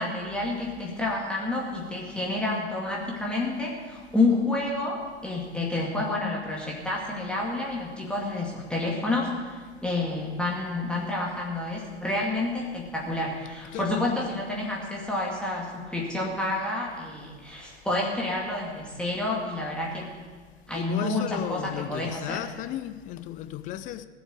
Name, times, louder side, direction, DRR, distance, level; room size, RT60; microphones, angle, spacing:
voice 1, 0.0-20.2 20.7-22.4, left 2 dB, 5° left, 2.2 m, -29 dB
voice 2, 13.7-14.3 20.7-24.1, left 13 dB, 25° left, 0.5 m, -35 dB
16.5 x 7.2 x 8.8 m
figure-of-eight pair, 95°, 34 cm